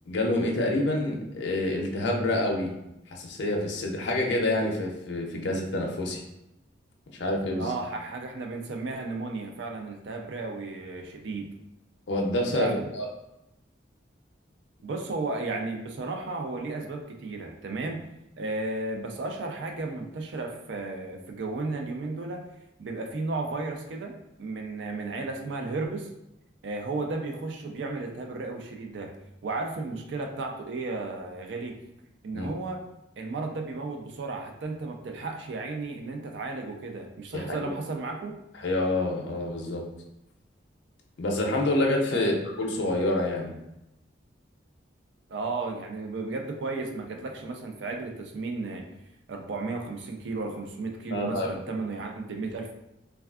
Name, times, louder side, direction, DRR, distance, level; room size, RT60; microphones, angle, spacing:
voice 1, 0.1-2.7 3.1-6.2 7.2-7.7 12.1-13.1 32.3-32.5 37.3-37.7 38.6-39.8 41.2-43.5 51.1-51.5, left 1 dB, 70° left, 0 dB, 0.5 m, -27 dB
voice 2, 7.5-11.5 12.5-12.8 14.8-18.0 18.4-22.5 22.8-24.1 24.4-26.1 26.6-29.1 29.4-31.8 32.2-32.8 33.2-38.4 42.1-42.4 45.3-48.8 49.3-52.7, right 3 dB, 70° right, 3 dB, 0.4 m, -34 dB
3.3 x 2.3 x 2.3 m, 0.88 s
head